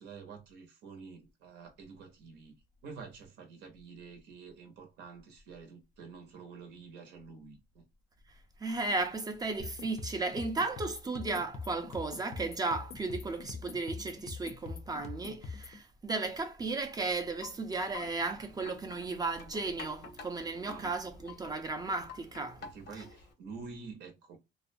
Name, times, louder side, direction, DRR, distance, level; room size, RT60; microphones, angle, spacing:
voice 1, 0.0-7.9 20.6-20.9 22.6-24.4, right 5 dB, 85° right, 0.7 m, -48 dB
voice 2, 8.6-22.6 22.9-23.0, right 3 dB, 25° right, 0.4 m, -35 dB
sound 1, 9.6-15.8, left 4 dB, 40° left, 0.5 m, -43 dB
Wind chime, 17.1-23.3, left 4 dB, 70° left, 0.8 m, -50 dB
2.4 x 2.1 x 2.5 m
cardioid pair, 110°, 17 cm